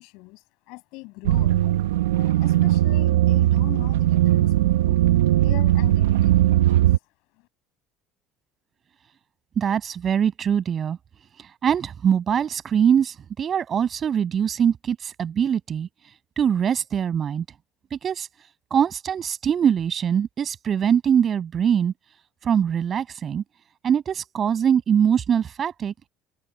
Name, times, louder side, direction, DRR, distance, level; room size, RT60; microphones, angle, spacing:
voice 1, 0.0-1.7 2.2-5.0 5.4-6.9, left 26 dB, 70° left, 7.6 m, -41 dB
sound 1, 1.2-7.0, right 14 dB, 80° right, 1.4 m, -19 dB
voice 2, 9.6-11.0 11.6-15.9 16.4-17.4 17.9-18.3 18.7-21.9 22.4-23.4 23.8-26.1, right 8 dB, 40° right, 7.6 m, -22 dB
hypercardioid pair, 70°, 0 cm